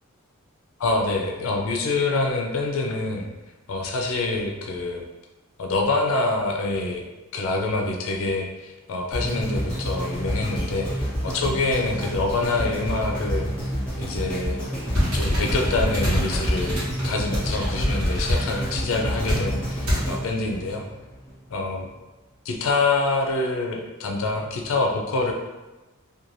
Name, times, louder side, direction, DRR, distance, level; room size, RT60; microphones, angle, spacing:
voice 1, 0.8-3.3 3.7-5.0 5.6-7.0 7.3-13.7 14.0-14.6 15.1-16.7 17.0-20.8 21.5-21.9 22.4-25.3, left 3 dB, 65° left, 1 dB, 0.4 m, -26 dB
sound 1, 9.1-21.3 21.9-22.0, equal, 5° left, 0.7 m, -29 dB
sound 2, 14.9-18.5 19.3-19.4 19.9-20.1, equal, 70° right, 1.1 m, -25 dB
2.5 x 2.2 x 3.0 m, 1.1 s
head